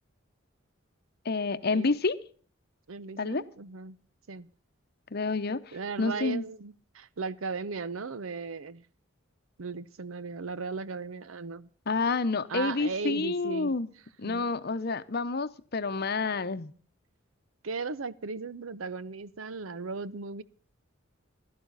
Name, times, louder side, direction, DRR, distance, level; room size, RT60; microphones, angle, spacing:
voice 1, 1.2-2.2 3.2-3.4 5.1-5.6 6.0-6.4 11.9-13.9 14.2-16.7, left 3 dB, 50° left, 13 dB, 0.8 m, -29 dB
voice 2, 2.9-4.0 4.3-4.5 5.7-8.8 9.6-11.7 12.5-13.8 14.2-14.5 17.6-20.4, right 4 dB, 85° right, 17 dB, 0.7 m, -37 dB
16.0 x 12.0 x 4.0 m, 0.43 s
head